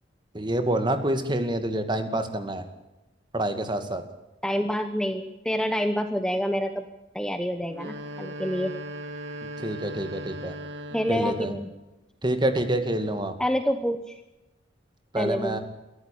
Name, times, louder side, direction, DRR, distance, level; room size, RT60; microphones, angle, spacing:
voice 1, 0.3-2.7 3.3-4.0 9.6-10.6 11.1-11.5 12.2-13.4 15.1-15.6, right 1 dB, 25° right, 8 dB, 2.2 m, -27 dB
voice 2, 4.4-6.8 7.1-8.7 10.9-11.7 13.4-14.2 15.2-15.6, equal, 5° left, 7 dB, 1.0 m, -27 dB
sound 1, 7.6-11.7, equal, 75° right, 3.8 m, -38 dB
23.0 x 14.0 x 8.6 m, 1.0 s
head